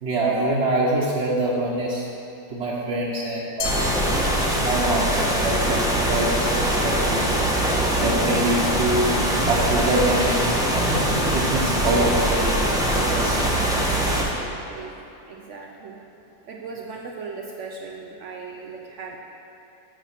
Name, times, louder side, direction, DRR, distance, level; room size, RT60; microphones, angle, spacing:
voice 1, 0.0-2.0 2.5-3.9 4.5-7.3 8.0-9.1 9.5-13.4, right 1 dB, 45° right, -5 dB, 1.0 m, -25 dB
Glass, 3.6-5.0, left 4 dB, 60° left, 1.2 m, -34 dB
sound 1, 3.6-14.2, right 1 dB, 5° right, 0.4 m, -22 dB
voice 2, 14.0-15.0 15.3-16.0 16.5-19.2, right 4 dB, 75° right, 0 dB, 0.6 m, -38 dB
7.2 x 6.6 x 5.8 m, 2.8 s
omnidirectional pair, 1.9 m